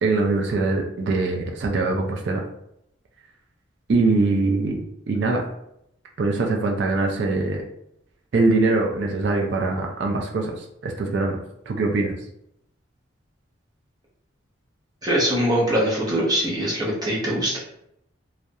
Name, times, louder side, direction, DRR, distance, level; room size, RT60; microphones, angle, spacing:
voice 1, 0.0-2.4 3.9-4.8 5.1-5.4 6.2-7.6 8.3-11.4 11.7-12.1, right 3 dB, 60° right, 1 dB, 0.3 m, -22 dB
voice 2, 15.0-17.6, equal, 20° right, -5 dB, 0.6 m, -22 dB
2.3 x 2.0 x 2.6 m, 0.76 s
head